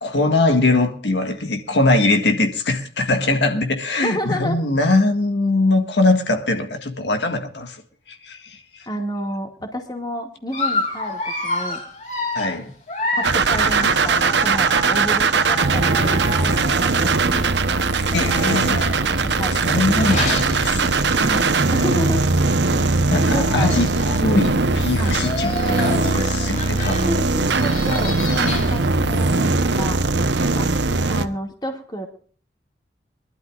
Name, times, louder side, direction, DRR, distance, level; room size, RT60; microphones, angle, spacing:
voice 1, 0.0-7.8 8.1-8.9 12.3-12.7 18.1-18.8 19.5-21.3 23.1-27.2, left 2 dB, 80° left, 1.8 m, -21 dB
voice 2, 4.0-4.6 8.9-11.8 13.1-17.9 19.0-19.9 21.1-22.2 23.3-23.9 24.9-25.2 26.1-26.5 27.1-30.1 30.4-30.7 31.1-32.1, equal, 25° left, 2.2 m, -30 dB
Dog, 10.5-17.1 17.9-21.5 21.9-22.1 22.3-22.4 23.3-23.4 23.6-24.1 24.8-28.9, left 2 dB, 40° left, 3.0 m, -30 dB
sound 1, 13.2-31.3, right 3 dB, 85° right, 1.0 m, -20 dB
23.5 x 12.0 x 2.5 m
head